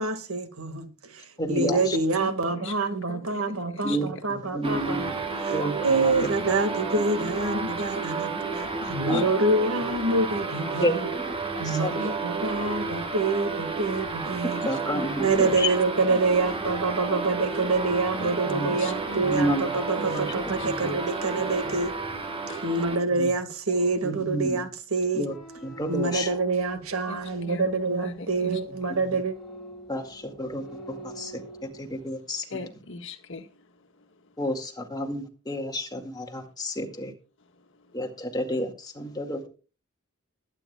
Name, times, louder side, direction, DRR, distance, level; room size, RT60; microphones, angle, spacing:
voice 1, 0.0-5.1 5.4-11.1 11.6-14.6 15.2-21.9 22.6-25.3 25.9-29.3, right 3 dB, 85° right, 1.8 m, -26 dB
voice 2, 1.4-2.0 3.8-5.2 5.5-6.3 7.0-7.1 9.1-9.3 10.8-11.3 11.6-12.1 14.7-15.7 18.5-18.7 19.2-20.2 20.6-21.0 21.4-21.7 23.1-23.3 24.0-24.6 25.1-25.4 25.6-26.3 28.7-29.2 29.9-31.4 31.7-32.6 34.4-37.1 37.9-39.5, equal, 20° left, 2.0 m, -31 dB
voice 3, 2.2-4.0 7.2-7.3 7.9-8.1 8.4-9.2 11.6-11.7 12.0-12.1 14.3-15.3 18.2-19.4 20.0-20.3 20.6-20.7 22.5-22.7 27.1-27.2 27.5-28.6 32.4-34.3 37.6-38.0, left 3 dB, 60° left, 1.6 m, -42 dB
sound 1, 4.6-23.0, right 4 dB, 25° right, 1.6 m, -31 dB
sound 2, 25.1-32.1, right 1 dB, ahead, 6.0 m, -45 dB
21.0 x 9.7 x 2.3 m
head